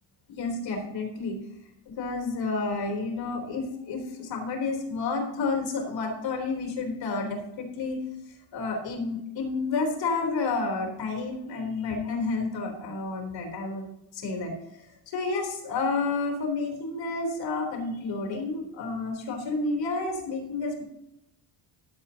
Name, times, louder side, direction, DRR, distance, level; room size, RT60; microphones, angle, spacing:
voice 1, 0.3-1.4 1.9-8.0 8.5-13.9 14.1-14.5 15.1-20.8, left 3 dB, 65° left, 1 dB, 3.7 m, -30 dB
14.0 x 12.0 x 2.9 m, 0.85 s
cardioid pair, 175°, 47 cm